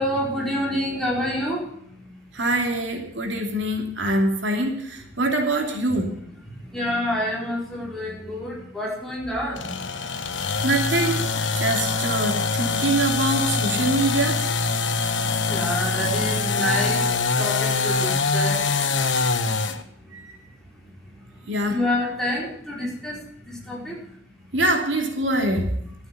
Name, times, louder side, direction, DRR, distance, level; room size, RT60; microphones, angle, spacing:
voice 1, 0.0-2.2 6.5-9.8 15.1-19.0 19.5-19.6 20.0-20.2 21.1-24.1, left 1 dB, 5° left, -4 dB, 4.6 m, -28 dB
voice 2, 2.3-6.1 10.6-14.4 20.1-20.2 21.5-21.8 24.5-25.7, right 1 dB, 80° right, 3 dB, 2.9 m, -24 dB
sound 1, 9.6-19.8, left 4 dB, 85° left, 1.3 m, -24 dB
13.0 x 8.8 x 8.3 m, 0.70 s
head